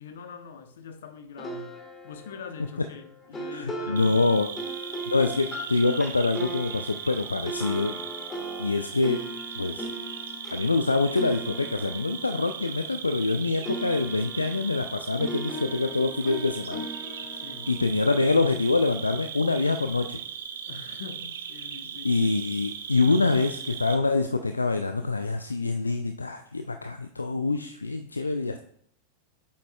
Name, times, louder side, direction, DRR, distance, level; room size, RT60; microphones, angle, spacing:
voice 1, 0.0-1.7 2.0-4.4 17.2-17.9 20.7-22.3 23.1-23.2, left 6 dB, 60° left, 0.8 m, -43 dB
sound 1, 1.4-13.4 13.7-18.9, right 1 dB, 15° left, 1.4 m, -39 dB
voice 2, 3.5-4.5 5.1-7.9 8.6-9.2 9.6-9.9 10.5-16.8 17.7-20.2 22.0-28.6, left 3 dB, 80° left, 0.4 m, -25 dB
Cricket, 4.0-24.0, right 7 dB, 60° right, 0.6 m, -38 dB
8.2 x 7.3 x 2.2 m
figure-of-eight pair, 90°, 0 cm